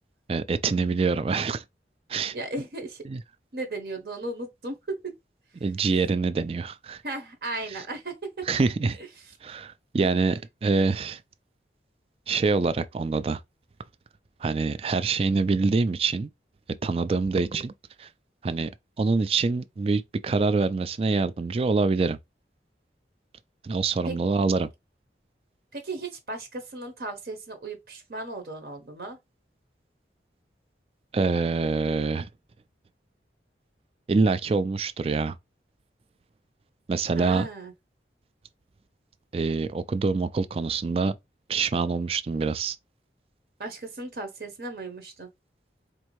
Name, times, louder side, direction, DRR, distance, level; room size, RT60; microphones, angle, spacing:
voice 1, 0.3-1.6 2.1-2.3 3.1-3.2 5.6-7.0 8.5-9.0 9.4-11.2 12.3-13.4 14.4-16.3 16.8-17.7 18.0-18.1 18.4-18.7 19.0-22.2 23.6-24.7 31.1-32.3 34.1-35.4 36.9-37.5 39.3-41.1 41.5-42.8, right 4 dB, 35° right, 0.3 m, -25 dB
voice 2, 2.3-3.0 3.5-5.1 7.0-8.6 17.5-17.7 24.0-24.1 25.7-29.2 37.2-37.7 43.6-45.3, right 2 dB, 60° right, 0.8 m, -36 dB
4.4 x 2.6 x 3.0 m
head